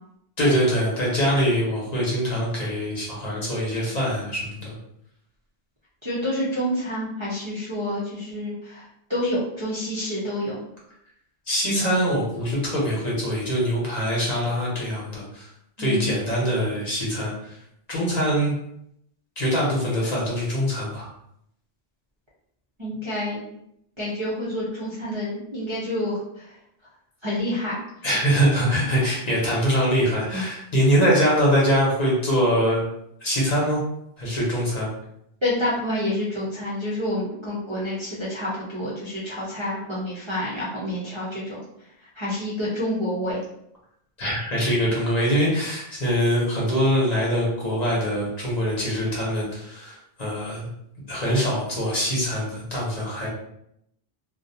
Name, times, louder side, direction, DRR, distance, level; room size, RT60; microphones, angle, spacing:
voice 1, 0.4-4.7 11.5-15.5 15.8-17.6 17.9-18.5 19.4-21.1 28.0-32.9 33.2-33.8 34.2-34.9 44.2-50.7 51.1-53.3, equal, 45° left, -5 dB, 0.8 m, -23 dB
voice 2, 6.0-8.8 9.1-10.6 15.8-16.2 22.8-23.4 24.0-26.6 27.2-27.8 30.3-30.4 35.4-41.6 42.2-43.4, left 1 dB, 35° right, -8 dB, 0.5 m, -28 dB
2.4 x 2.1 x 2.6 m, 0.75 s
omnidirectional pair, 1.0 m